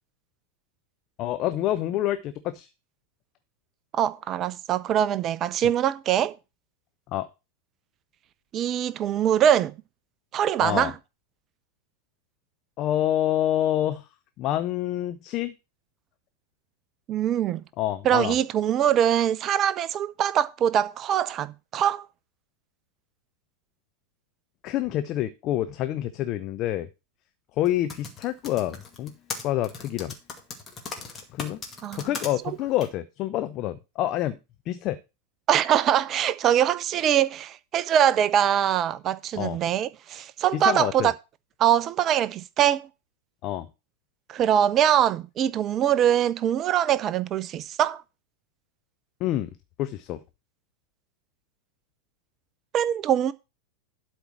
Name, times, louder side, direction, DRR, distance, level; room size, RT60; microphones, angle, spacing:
voice 1, 1.2-2.7 7.1-7.3 10.6-10.9 12.8-14.1 14.4-15.5 17.8-18.4 24.6-26.9 27.6-29.1 29.4-30.1 31.0-31.6 31.9-34.4 34.7-35.0 39.4-39.6 40.5-41.1 43.4-43.7 49.2-49.5 49.8-50.2, left 13 dB, 35° left, 0.7 m, -27 dB
voice 2, 3.9-6.3 8.5-9.7 10.3-10.9 17.1-17.6 18.0-22.1 31.8-32.1 35.5-41.1 41.6-42.9 44.3-48.0 52.7-53.3, right 10 dB, 30° right, 0.5 m, -23 dB
Typing, 27.7-32.3 32.8-32.9, left 4 dB, 20° left, 2.2 m, -37 dB
12.0 x 4.5 x 6.0 m
figure-of-eight pair, 90°, 0 cm